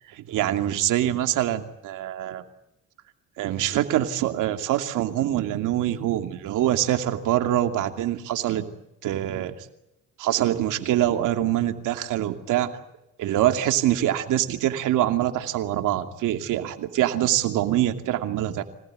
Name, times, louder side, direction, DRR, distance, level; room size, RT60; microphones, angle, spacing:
voice 1, 0.2-2.4 3.4-8.7 9.0-9.5 10.2-12.7 13.2-18.6, right 13 dB, 90° right, 7 dB, 2.7 m, -24 dB
26.0 x 18.5 x 9.4 m, 0.89 s
cardioid pair, 90°, 30 cm